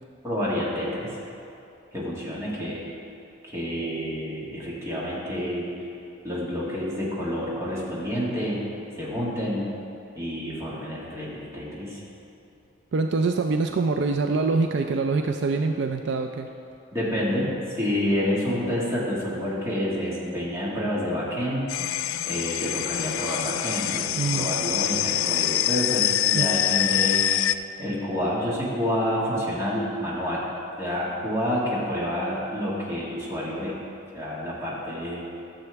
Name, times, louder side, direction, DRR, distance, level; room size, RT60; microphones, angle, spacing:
voice 1, 0.2-1.1 1.9-2.9 3.4-5.7 6.2-8.6 9.0-9.7 10.2-12.0 16.9-21.7 22.3-27.5 27.8-30.5 30.8-33.8 34.1-35.3, equal, 15° right, -7 dB, 1.9 m, -28 dB
voice 2, 12.9-16.5 24.2-24.5 26.3-26.5, right 3 dB, 60° right, 5 dB, 0.4 m, -24 dB
sound 1, 21.7-27.6, left 12 dB, 85° left, 0.3 m, -25 dB
13.0 x 7.0 x 3.5 m, 2.8 s
head